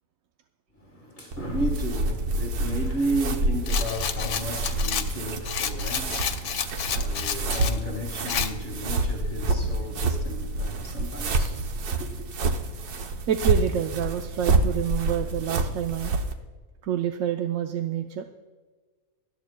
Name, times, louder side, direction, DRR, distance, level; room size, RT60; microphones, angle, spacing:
voice 1, 0.8-12.2, right 1 dB, 35° left, 1.7 m, -34 dB
sound 1, 1.3-16.3, right 2 dB, 90° right, 1.4 m, -28 dB
Rattle, 3.7-7.8 8.3-8.5, left 8 dB, 85° left, 1.3 m, -30 dB
voice 2, 13.3-16.1 16.8-18.2, right 10 dB, 70° right, 1.0 m, -27 dB
24.0 x 12.5 x 2.2 m
omnidirectional pair, 1.6 m